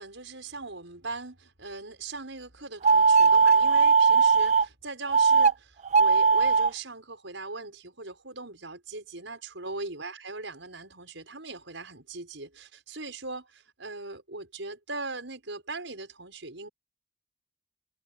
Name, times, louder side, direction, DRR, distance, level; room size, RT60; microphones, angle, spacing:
voice 1, 0.0-16.7, right 3 dB, 70° right, 6.2 m, -40 dB
sound 1, 2.8-4.7 5.1-5.5 5.9-6.7, right 5 dB, 35° right, 0.4 m, -19 dB
head